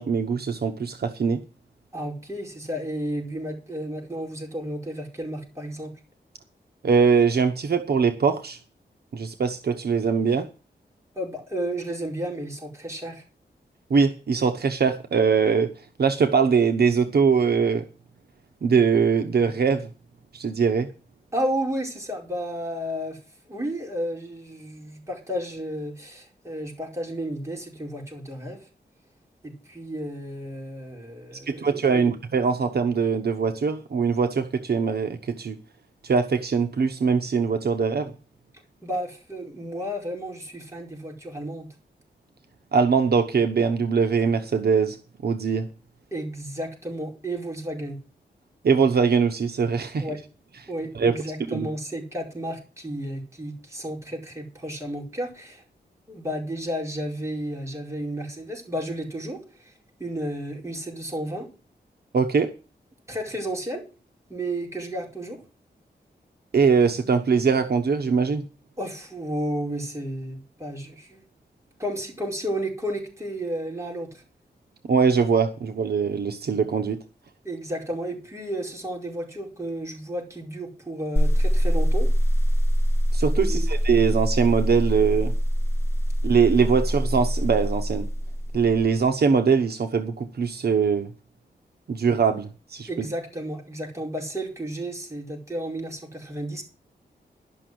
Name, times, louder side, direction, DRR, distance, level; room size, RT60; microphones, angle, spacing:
voice 1, 0.0-1.4 6.8-8.6 9.1-10.5 13.9-15.7 16.0-17.8 18.6-19.9 20.3-20.9 31.5-35.6 36.0-38.1 42.7-45.0 45.2-45.7 48.6-50.1 50.9-51.1 51.5-51.7 62.1-62.5 66.5-68.4 74.9-77.0 83.1-85.3 86.2-88.0 88.5-91.1 91.9-93.1, right 5 dB, 65° right, 6 dB, 1.0 m, -22 dB
voice 2, 1.9-5.9 11.1-13.2 21.3-23.2 23.5-28.7 29.4-32.1 38.8-41.7 46.1-48.0 50.0-50.2 50.7-55.6 56.1-59.7 60.0-61.5 63.1-63.8 64.3-65.4 68.8-71.2 71.8-74.2 77.4-82.1 83.4-83.7 92.9-96.6, right 1 dB, 15° right, -1 dB, 4.9 m, -32 dB
sound 1, 81.2-89.0, equal, 15° left, 4.7 m, -24 dB
12.0 x 6.1 x 7.8 m, 0.34 s
wide cardioid pair, 125°, 17 cm